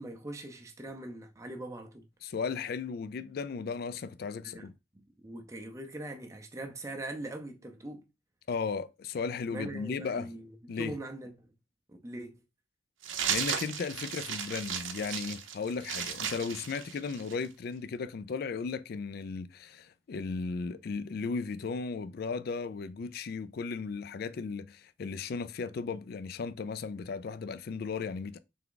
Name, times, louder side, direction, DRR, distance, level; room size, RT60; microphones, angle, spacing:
voice 1, 0.0-2.0 4.5-4.7 5.2-8.0 9.5-10.5 10.8-11.5 11.9-12.4, right 1 dB, 15° right, 0.5 m, -41 dB
voice 2, 2.2-4.7 8.5-10.4 10.7-11.0 13.3-28.4, left 5 dB, 50° left, 0.3 m, -36 dB
sound 1, 13.0-17.5, right 7 dB, 70° right, 0.6 m, -35 dB
3.5 x 3.5 x 3.7 m
head